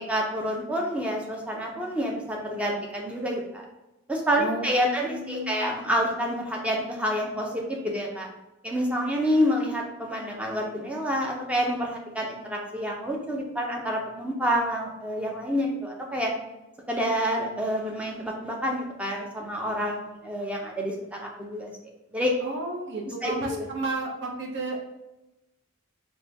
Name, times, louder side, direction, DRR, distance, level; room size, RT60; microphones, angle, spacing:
voice 1, 0.1-3.6 4.1-8.3 8.6-16.3 16.9-21.7 22.1-22.3 23.2-23.6, equal, 5° right, -1 dB, 0.5 m, -28 dB
voice 2, 4.4-5.7 22.4-24.8, right 2 dB, 55° right, 0 dB, 0.8 m, -33 dB
4.2 x 2.2 x 3.3 m, 0.97 s
head